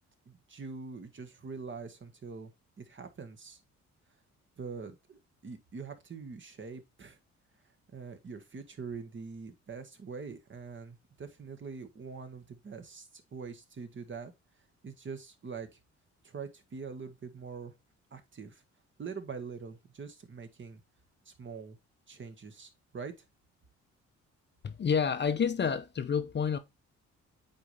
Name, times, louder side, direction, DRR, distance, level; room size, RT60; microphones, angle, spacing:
voice 1, 0.3-2.5 2.8-3.6 4.6-7.2 7.9-14.3 14.8-15.8 16.2-17.7 18.1-18.6 19.0-20.8 21.2-21.8 22.1-23.1, right 5 dB, 40° right, 1.5 m, -44 dB
voice 2, 24.6-26.6, left 6 dB, 35° left, 0.7 m, -29 dB
8.5 x 4.2 x 3.3 m
cardioid pair, 90°, 30 cm